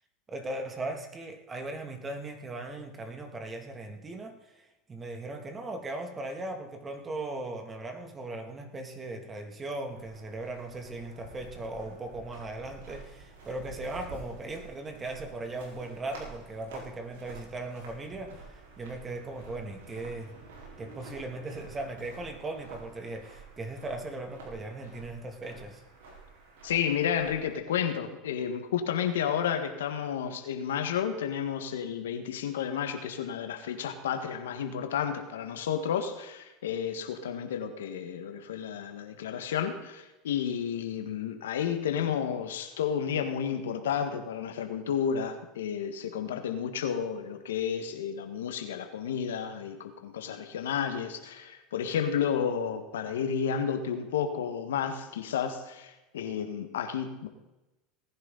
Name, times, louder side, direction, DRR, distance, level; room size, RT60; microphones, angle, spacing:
voice 1, 0.3-20.3 20.8-25.8, right 2 dB, 25° right, 5 dB, 2.6 m, -38 dB
sound 1, 9.9-27.5, right 3 dB, 80° right, 4.6 m, -49 dB
voice 2, 26.6-57.3, left 8 dB, 85° left, 7 dB, 1.6 m, -31 dB
19.0 x 10.5 x 4.1 m, 1.0 s
hypercardioid pair, 95°, 0 cm